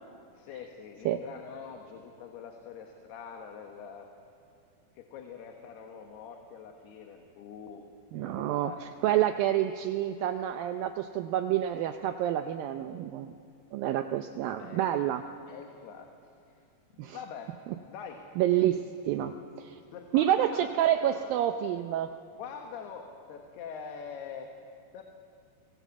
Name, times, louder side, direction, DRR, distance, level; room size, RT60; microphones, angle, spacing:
voice 1, 0.4-4.1 4.9-7.8 8.1-8.8 14.6-14.9 15.5-16.1 17.1-17.6 17.9-18.3 19.9-21.3 22.4-24.5 24.9-25.0, left 6 dB, 85° left, 3 dB, 3.5 m, -44 dB
voice 2, 8.1-8.7 9.0-13.3 13.7-15.2 17.0-17.2 18.4-19.8 20.1-22.1, right 12 dB, 75° right, 7 dB, 2.3 m, -28 dB
29.0 x 20.5 x 8.4 m, 2.5 s
omnidirectional pair, 4.5 m